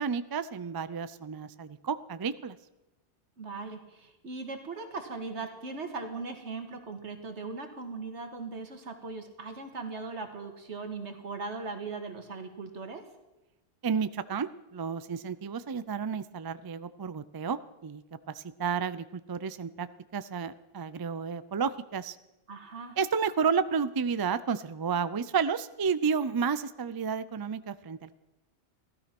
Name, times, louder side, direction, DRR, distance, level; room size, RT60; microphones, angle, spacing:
voice 1, 0.0-2.6 13.8-18.0 18.3-19.9 20.1-22.2 23.0-28.1, right 6 dB, 35° right, 14 dB, 0.3 m, -31 dB
voice 2, 3.4-13.1 22.5-23.0, right 4 dB, 85° right, 6 dB, 2.0 m, -39 dB
16.0 x 12.5 x 6.0 m, 0.99 s
omnidirectional pair, 1.1 m